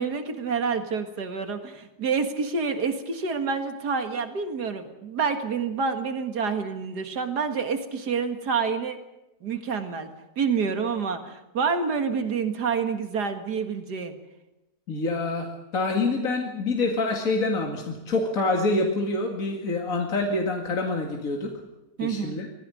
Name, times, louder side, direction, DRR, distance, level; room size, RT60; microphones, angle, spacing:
voice 1, 0.0-9.0 9.4-10.1 10.4-14.1 22.0-22.4, right 5 dB, 85° right, 7 dB, 2.4 m, -28 dB
voice 2, 14.9-21.5 22.0-22.5, left 2 dB, 55° left, 1 dB, 2.6 m, -26 dB
21.5 x 15.5 x 9.8 m, 0.96 s
omnidirectional pair, 1.7 m